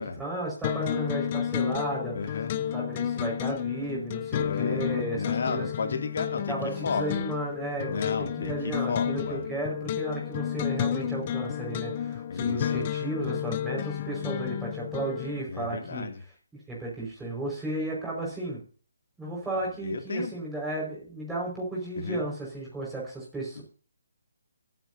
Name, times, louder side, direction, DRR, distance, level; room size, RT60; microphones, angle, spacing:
voice 1, 0.0-2.4 2.7-5.9 6.5-16.1 16.7-18.6 19.2-23.6, right 2 dB, 5° right, -5 dB, 5.3 m, -34 dB
sound 1, 0.6-15.4, left 10 dB, 30° left, 0.6 m, -31 dB
voice 2, 2.1-2.5 4.4-4.9 5.1-6.5 6.8-7.1 7.9-9.4 12.3-12.8 15.5-16.2 19.8-20.3 22.0-22.2 23.5-23.6, left 5 dB, 55° left, 5 dB, 2.6 m, -33 dB
24.5 x 9.3 x 2.8 m, 0.40 s
hypercardioid pair, 165°, 0 cm